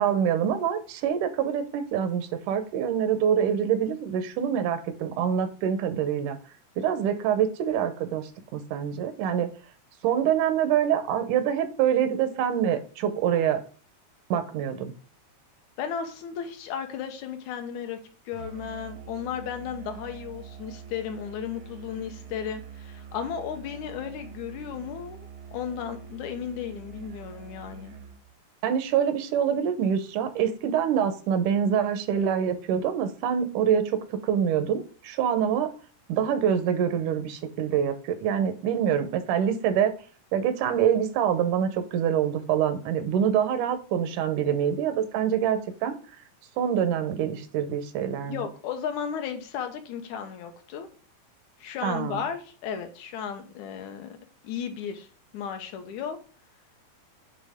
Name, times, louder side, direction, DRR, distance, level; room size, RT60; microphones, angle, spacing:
voice 1, 0.0-6.4 6.8-9.5 10.0-13.6 14.3-14.9 28.6-35.7 36.1-39.9 40.3-46.0 46.6-48.5 51.8-52.2, right 8 dB, 90° right, 10 dB, 2.4 m, -25 dB
voice 2, 15.8-18.0 18.3-27.9 48.3-50.9 51.6-54.2 54.4-55.1 55.3-56.2, left 8 dB, 75° left, 6 dB, 2.3 m, -34 dB
Musical instrument, 18.3-28.3, right 7 dB, 75° right, 1.2 m, -45 dB
8.7 x 3.5 x 3.5 m, 0.41 s
omnidirectional pair, 3.4 m